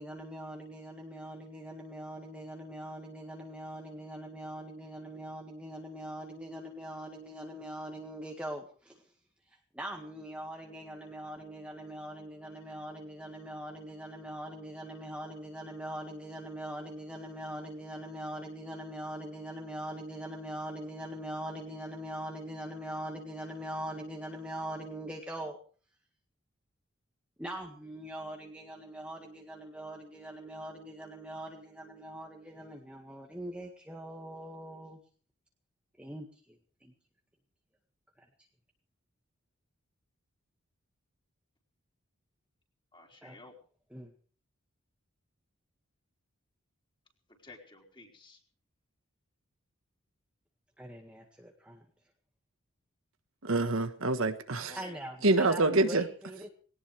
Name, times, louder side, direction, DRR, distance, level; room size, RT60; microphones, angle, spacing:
voice 1, 0.0-9.1 9.5-25.6 27.4-35.0 36.0-36.9 38.2-38.3 43.2-43.5 43.9-44.1 50.8-51.9 54.5-56.5, right 1 dB, 5° right, 0 dB, 1.8 m, -42 dB
voice 2, 42.9-43.6 47.4-48.4 54.5-54.9, left 3 dB, 25° left, 0 dB, 4.6 m, -52 dB
voice 3, 53.4-54.8 55.2-56.0, right 2 dB, 65° right, 8 dB, 1.4 m, -26 dB
20.5 x 18.5 x 3.4 m, 0.42 s
head